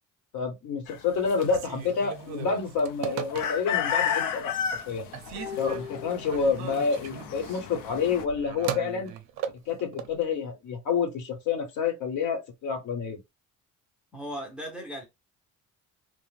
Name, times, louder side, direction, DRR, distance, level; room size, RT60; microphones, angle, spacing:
voice 1, 0.3-4.5 4.9-5.1 5.6-9.1 9.7-13.2, left 5 dB, 65° left, 1.0 m, -28 dB
sound 1, 0.9-8.2, left 8 dB, 85° left, 0.6 m, -33 dB
Telephone, 1.4-3.9 4.3-4.8 5.1-10.2, right 9 dB, 60° right, 0.5 m, -38 dB
sound 2, 5.4-7.0 7.3-7.4, left 8 dB, 35° left, 0.8 m, -40 dB
voice 2, 14.1-15.0, equal, 5° right, 0.5 m, -37 dB
2.5 x 2.1 x 3.1 m
cardioid pair, 175°, 31 cm